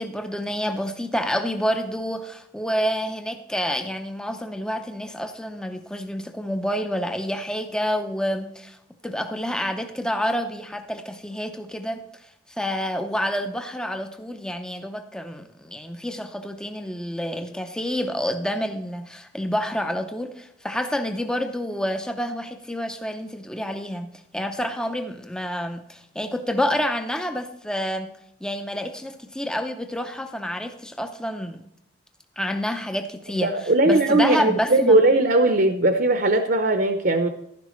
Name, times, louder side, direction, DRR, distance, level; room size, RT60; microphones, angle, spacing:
voice 1, 0.0-8.8 9.0-12.0 12.5-28.1 28.4-31.6 32.4-35.0, equal, 5° left, 7 dB, 0.5 m, -28 dB
voice 2, 33.3-37.3, right 2 dB, 50° right, 6 dB, 0.7 m, -19 dB
12.0 x 10.5 x 3.1 m, 0.78 s
head